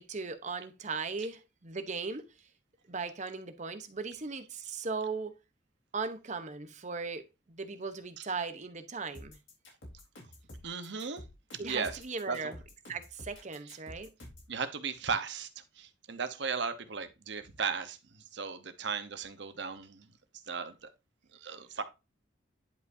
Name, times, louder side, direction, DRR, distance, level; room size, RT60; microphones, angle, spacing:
voice 1, 0.0-2.3 2.9-5.3 5.9-9.4 11.6-12.6 12.9-14.1, right 4 dB, 40° right, 0.9 m, -38 dB
sound 1, 9.1-14.5, left 1 dB, 85° left, 3.8 m, -49 dB
voice 2, 10.6-11.2 11.5-12.0 12.3-12.5 13.7-13.8 14.5-15.5 15.7-20.1 20.5-20.9 21.3-21.8, right 5 dB, 65° right, 0.9 m, -36 dB
10.5 x 5.3 x 2.7 m
head